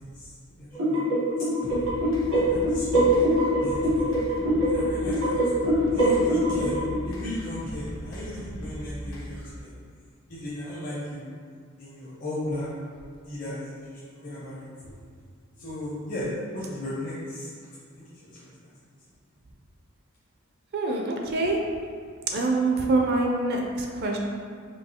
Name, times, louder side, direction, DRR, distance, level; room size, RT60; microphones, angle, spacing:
voice 1, 0.1-1.1 1.6-1.9 2.4-3.3 3.6-4.0 4.6-5.4 5.9-6.8 7.0-9.7 10.3-11.2 11.8-12.7 13.2-13.6 14.2-14.9 15.6-17.5 18.0-18.5, left 1 dB, 40° left, -9 dB, 0.7 m, -36 dB
sound 1, 0.7-7.0, equal, 85° right, 1.1 m, -23 dB
sound 2, 1.6-9.6, equal, 75° left, 0.9 m, -38 dB
voice 2, 20.7-21.6 22.3-24.2, right 2 dB, 50° right, 1 dB, 0.4 m, -25 dB
4.5 x 2.7 x 2.9 m, 2.1 s
head